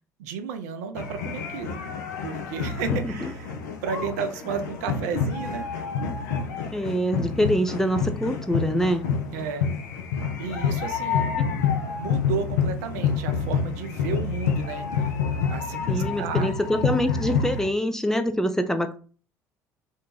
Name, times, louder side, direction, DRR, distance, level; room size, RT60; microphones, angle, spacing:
voice 1, 0.2-1.8 2.2-3.5 3.8-5.7 9.3-9.7 10.4-11.3 12.0-15.1 15.5-16.5, right 6 dB, 70° right, 7 dB, 0.4 m, -33 dB
sound 1, 1.0-17.7, left 6 dB, 75° left, 0.4 m, -28 dB
voice 2, 2.9-3.3 6.7-9.0 11.4-11.5 15.9-19.0, equal, 5° left, 7 dB, 0.4 m, -25 dB
2.5 x 2.1 x 3.1 m, 0.38 s
figure-of-eight pair, 55°, 9 cm